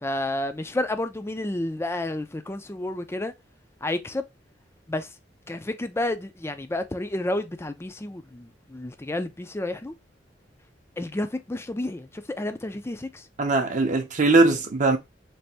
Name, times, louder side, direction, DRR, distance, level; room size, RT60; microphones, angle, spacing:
voice 1, 0.0-3.3 3.8-4.2 4.9-5.1 5.5-9.9 11.0-13.2, left 1 dB, 15° left, 0.4 m, -30 dB
voice 2, 13.4-15.0, right 3 dB, 45° right, 0.6 m, -20 dB
3.3 x 2.6 x 4.1 m
head